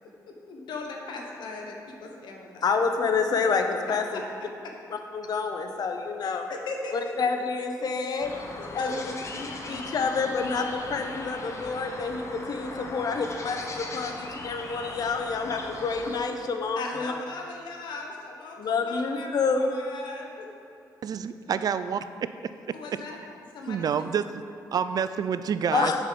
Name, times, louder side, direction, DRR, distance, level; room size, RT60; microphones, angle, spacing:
voice 1, 0.0-2.7 6.2-7.1 8.6-9.2 9.6-9.7 16.8-20.4 22.7-23.2 23.5-23.9, left 3 dB, 80° left, 1 dB, 1.3 m, -38 dB
voice 2, 2.6-4.2 5.1-6.4 6.9-8.4 8.7-9.1 9.4-17.1 18.6-19.7 25.7-26.0, left 4 dB, 60° left, 5 dB, 0.9 m, -28 dB
sound 1, 8.2-16.1, left 2 dB, 40° left, 1.1 m, -39 dB
voice 3, 21.0-22.0 23.7-24.3 24.7-25.9, right 7 dB, 55° right, 12 dB, 0.4 m, -27 dB
7.1 x 5.5 x 6.9 m, 2.6 s
cardioid pair, 70°, 8 cm